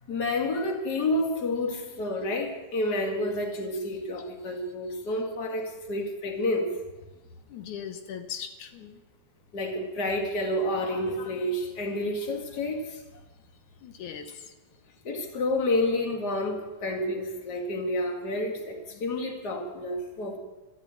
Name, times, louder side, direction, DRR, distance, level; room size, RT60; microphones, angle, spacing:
voice 1, 0.1-6.7 9.5-13.0 15.0-20.4, left 1 dB, 35° left, 2.3 m, -29 dB
voice 2, 7.5-9.0 13.8-14.5 18.9-19.0, left 8 dB, 85° left, 2.5 m, -39 dB
13.5 x 13.0 x 7.5 m
omnidirectional pair, 3.3 m